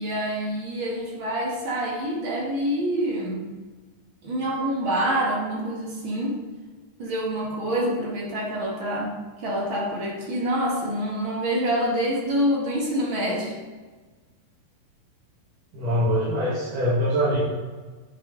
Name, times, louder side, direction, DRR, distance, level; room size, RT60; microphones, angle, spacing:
voice 1, 0.0-3.5 4.2-6.4 7.0-13.5, equal, 40° right, -3 dB, 2.5 m, -26 dB
voice 2, 15.7-17.4, equal, 65° right, -8 dB, 3.8 m, -23 dB
11.0 x 8.6 x 4.2 m, 1.3 s
omnidirectional pair, 4.1 m